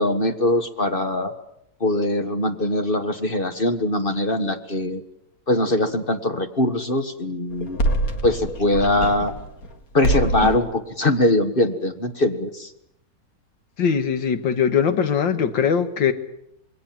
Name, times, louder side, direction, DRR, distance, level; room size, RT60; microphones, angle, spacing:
voice 1, 0.0-1.3 1.8-5.0 5.5-7.8 8.2-9.3 9.9-12.7, left 1 dB, 30° left, 7 dB, 1.6 m, -22 dB
sound 1, 7.5-9.7 10.0-10.7, right 1 dB, 50° left, 2.3 m, -25 dB
voice 2, 13.8-16.1, left 7 dB, 80° left, 10 dB, 2.2 m, -21 dB
27.0 x 21.5 x 7.6 m, 0.76 s
omnidirectional pair, 2.0 m